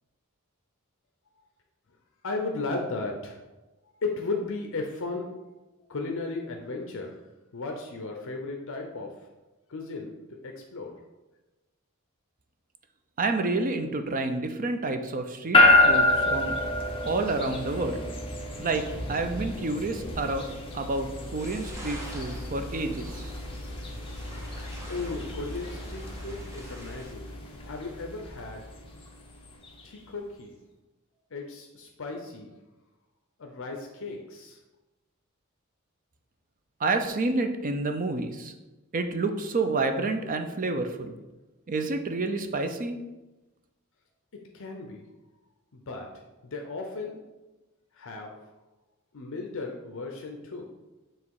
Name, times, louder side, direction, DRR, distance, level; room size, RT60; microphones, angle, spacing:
voice 1, 2.2-3.4 4.0-5.3 5.9-7.2 7.5-9.1 9.7-10.9 24.9-27.3 27.6-28.6 29.8-30.6 31.3-32.5 33.4-34.6 44.5-45.0 45.7-46.1 46.4-47.2 47.9-48.5 49.1-50.6, left 3 dB, 65° left, 2 dB, 0.7 m, -35 dB
voice 2, 13.2-16.6 17.0-18.0 18.6-20.5 20.7-23.3 36.8-38.5 38.9-41.1 41.7-43.0, right 3 dB, 40° right, 7 dB, 0.5 m, -29 dB
sound 1, 15.5-29.8, left 2 dB, 25° left, 1.0 m, -28 dB
sound 2, 21.4-27.1, equal, 15° right, 1.0 m, -45 dB
7.3 x 3.1 x 4.7 m, 1.1 s
head